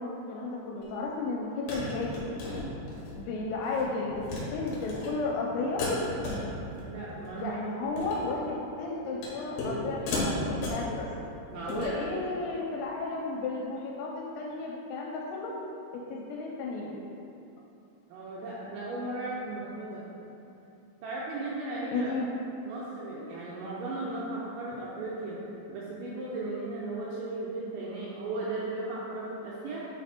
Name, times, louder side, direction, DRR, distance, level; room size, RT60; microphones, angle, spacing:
voice 1, 0.0-2.3 3.1-4.2 4.5-5.8 7.4-11.1 11.7-15.6 15.9-17.0 21.9-22.3, left 3 dB, 85° left, -2 dB, 3.2 m, -33 dB
sound 1, 0.8-0.9 1.7-3.2 3.5-3.8 4.1-4.4 4.7-5.1 5.8-6.8 7.1-7.4 7.8-8.3 9.2-9.8 10.1-10.9 11.5-11.9, left 2 dB, 65° left, 2.6 m, -35 dB
voice 2, 6.9-7.6 11.5-12.0 18.1-20.1 21.0-22.1 22.7-25.4 25.7-29.9, right 2 dB, 80° right, -6 dB, 2.7 m, -36 dB
9.4 x 3.4 x 4.3 m, 2.8 s
omnidirectional pair, 6.0 m